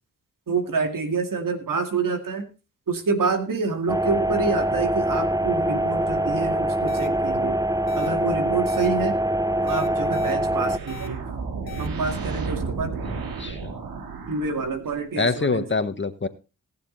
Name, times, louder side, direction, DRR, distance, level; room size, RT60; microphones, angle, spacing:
voice 1, 0.5-2.5 2.9-7.6 7.9-9.2 9.6-11.2 11.8-12.9 14.3-15.7, right 4 dB, 65° right, 6 dB, 2.4 m, -27 dB
sound 1, 3.9-10.8, right 1 dB, 10° right, 0.8 m, -24 dB
sound 2, 6.9-7.1 7.9-8.1 8.7-8.9 9.7-10.3 10.9-11.1 11.7-11.9, left 10 dB, 80° left, 1.1 m, -39 dB
sound 3, 9.7-15.1, right 5 dB, 90° right, 2.1 m, -33 dB
voice 2, 13.0-13.7 15.2-16.3, left 4 dB, 35° left, 11 dB, 1.4 m, -26 dB
19.0 x 7.0 x 4.0 m, 0.31 s
cardioid pair, 50°, 35 cm